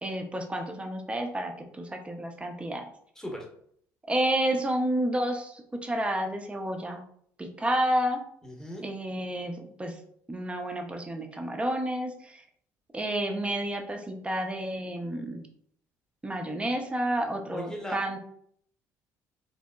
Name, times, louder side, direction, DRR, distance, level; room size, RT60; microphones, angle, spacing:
voice 1, 0.0-2.8 4.1-7.0 7.4-8.2 8.8-9.9 10.3-12.4 12.9-15.5 16.2-18.2, right 1 dB, 15° right, 3 dB, 0.5 m, -30 dB
voice 2, 3.2-3.5 8.4-8.8 17.5-18.0, equal, 5° left, 0 dB, 0.8 m, -37 dB
2.8 x 2.0 x 2.2 m, 0.65 s
hypercardioid pair, 65°, 8 cm